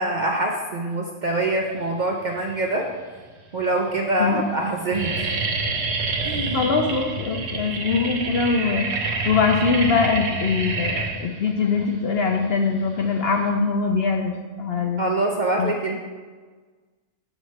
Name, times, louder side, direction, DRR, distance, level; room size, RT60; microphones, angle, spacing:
voice 1, 0.0-2.9 3.5-5.3 6.2-6.7 15.0-16.0, right 2 dB, 60° right, 0 dB, 0.5 m, -24 dB
sound 1, 2.3-2.9 3.6-3.7 3.9-4.3 4.6-13.5, right 3 dB, 75° right, 1.3 m, -28 dB
voice 2, 6.5-15.1 15.6-15.7, left 4 dB, 70° left, 3 dB, 0.6 m, -22 dB
7.5 x 6.3 x 3.2 m, 1.4 s
omnidirectional pair, 1.6 m